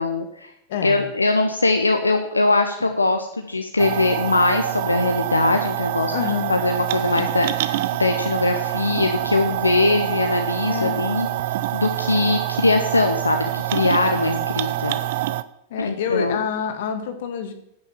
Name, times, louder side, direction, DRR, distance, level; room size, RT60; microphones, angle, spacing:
voice 1, 0.0-0.5 0.8-6.1 6.5-11.3 11.7-15.0 15.8-16.4, left 2 dB, 80° left, 5 dB, 0.8 m, -21 dB
voice 2, 0.7-1.0 6.1-6.5 10.7-11.0 14.1-14.5 15.7-17.5, left 7 dB, 55° left, 7 dB, 1.9 m, -27 dB
sound 1, 3.8-15.4, right 14 dB, 55° right, 0.6 m, -26 dB
9.4 x 8.8 x 7.3 m, 0.79 s
figure-of-eight pair, 90°, 0 cm